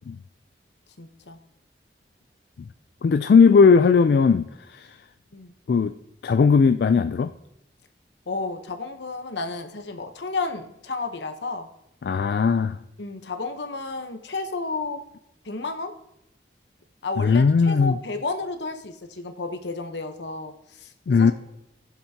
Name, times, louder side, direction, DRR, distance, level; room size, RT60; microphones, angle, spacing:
voice 1, 1.0-1.4 5.3-5.5 8.3-11.7 13.0-15.0 15.4-15.9 17.0-21.3, left 3 dB, 80° left, 7 dB, 1.0 m, -32 dB
voice 2, 3.0-5.0 5.7-5.9 6.2-7.3 12.0-12.8 17.2-18.0 21.1-21.3, left 5 dB, 60° left, 10 dB, 0.3 m, -18 dB
19.5 x 7.3 x 2.8 m, 0.83 s
head